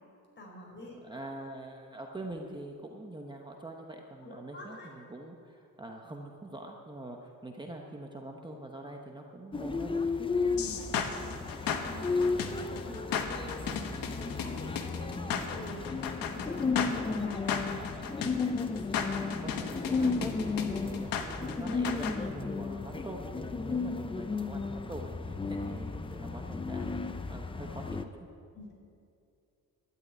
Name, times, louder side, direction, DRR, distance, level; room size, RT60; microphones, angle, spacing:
voice 1, 0.4-0.9 4.2-4.9 10.3-16.6 16.9-17.9 28.5-28.7, left 1 dB, 35° left, -1 dB, 4.5 m, -47 dB
voice 2, 1.0-10.3 19.4-28.1, right 2 dB, 15° right, 1 dB, 1.0 m, -44 dB
sound 1, 9.5-28.0, left 4 dB, 15° left, 0.6 m, -34 dB
sound 2, 10.6-22.2, left 7 dB, 80° left, 1.5 m, -35 dB
12.5 x 10.5 x 9.7 m, 2.6 s
cardioid pair, 135°, 34 cm